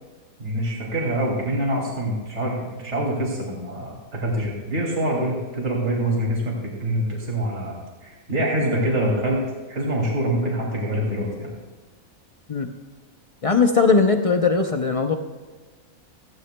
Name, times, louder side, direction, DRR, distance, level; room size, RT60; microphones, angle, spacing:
voice 1, 0.4-11.5, right 1 dB, 50° right, -3 dB, 2.9 m, -25 dB
voice 2, 13.4-15.1, left 4 dB, 55° left, 5 dB, 0.3 m, -19 dB
17.5 x 15.0 x 2.2 m, 1.3 s
omnidirectional pair, 1.5 m